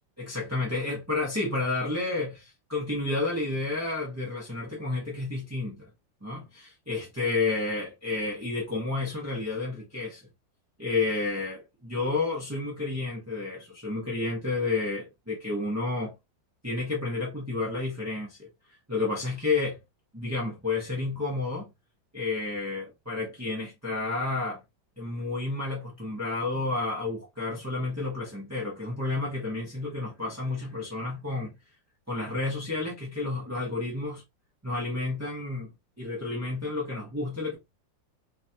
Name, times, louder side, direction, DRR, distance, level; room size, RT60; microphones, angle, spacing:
voice 1, 0.2-5.9 6.2-10.2 10.8-16.1 16.6-18.5 18.9-19.8 20.1-21.7 22.1-24.6 25.0-31.5 32.1-34.2 34.6-35.7 36.0-37.6, left 3 dB, 10° right, 1.0 m, -31 dB
4.0 x 3.2 x 2.8 m
omnidirectional pair, 2.1 m